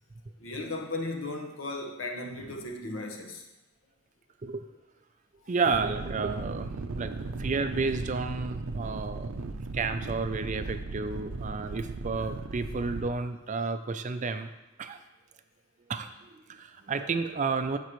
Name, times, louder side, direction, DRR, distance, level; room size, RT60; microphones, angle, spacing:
voice 1, 0.4-3.4, left 2 dB, 65° left, 2 dB, 1.2 m, -36 dB
voice 2, 5.5-6.7 6.9-9.4 9.7-14.5 14.8-15.0 15.9-17.8, right 4 dB, 35° right, 9 dB, 0.4 m, -31 dB
sound 1, 5.7-13.1, right 3 dB, 80° right, 0.6 m, -37 dB
15.0 x 5.2 x 3.1 m, 0.99 s
head